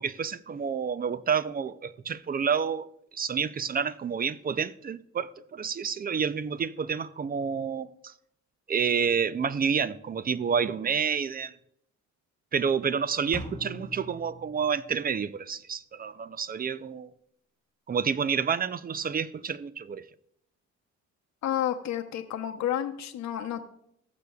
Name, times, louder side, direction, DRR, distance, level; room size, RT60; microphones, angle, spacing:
voice 1, 0.0-8.1 8.7-11.5 12.5-17.1 17.9-20.1, right 6 dB, 30° right, 0.5 m, -29 dB
sound 1, 13.3-15.3, left 1 dB, 5° left, 2.0 m, -42 dB
voice 2, 21.4-23.6, left 10 dB, 65° left, 0.9 m, -30 dB
20.0 x 6.9 x 2.3 m
cardioid pair, 90°, 30 cm